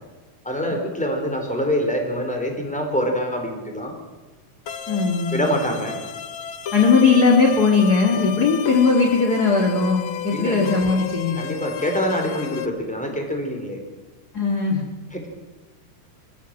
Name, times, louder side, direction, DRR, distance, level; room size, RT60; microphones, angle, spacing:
voice 1, 0.4-3.9 5.3-6.0 10.3-10.6 11.4-13.8 15.1-15.3, equal, ahead, 3 dB, 3.6 m, -25 dB
sound 1, 4.7-12.7, left 9 dB, 70° left, 1.2 m, -32 dB
voice 2, 4.9-5.4 6.7-11.4 14.3-14.8, left 4 dB, 30° left, 2 dB, 2.1 m, -18 dB
24.0 x 16.0 x 7.6 m, 1.3 s
omnidirectional pair, 4.0 m